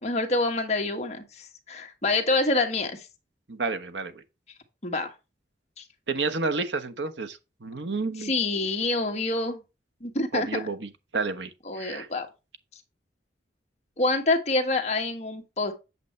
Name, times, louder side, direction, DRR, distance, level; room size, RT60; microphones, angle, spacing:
voice 1, 0.0-3.1 4.8-5.1 5.8-5.9 8.2-9.6 10.0-10.7 11.6-12.3 14.0-15.7, left 2 dB, 35° left, 1.6 m, -27 dB
voice 2, 3.5-4.2 6.1-8.3 10.3-11.5 11.8-12.1, right 3 dB, 80° right, 1.1 m, -30 dB
8.2 x 7.6 x 3.2 m
head